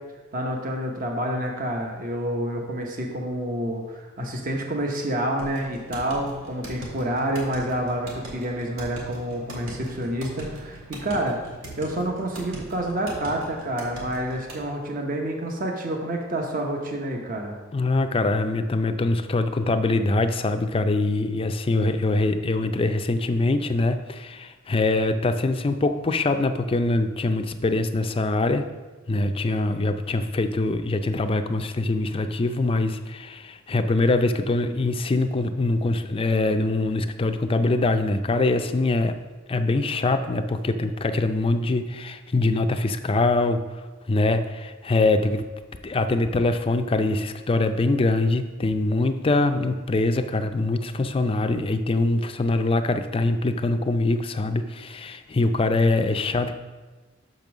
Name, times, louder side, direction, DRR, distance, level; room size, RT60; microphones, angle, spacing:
voice 1, 0.3-11.4 11.8-17.6, right 1 dB, 45° right, 2 dB, 1.0 m, -28 dB
sound 1, 5.4-14.7, right 1 dB, 80° right, 1.9 m, -40 dB
voice 2, 17.7-28.6 29.1-39.2 39.5-43.7 44.1-45.5 45.8-56.5, left 2 dB, 30° left, 8 dB, 0.4 m, -23 dB
6.2 x 5.3 x 6.1 m, 1.3 s
head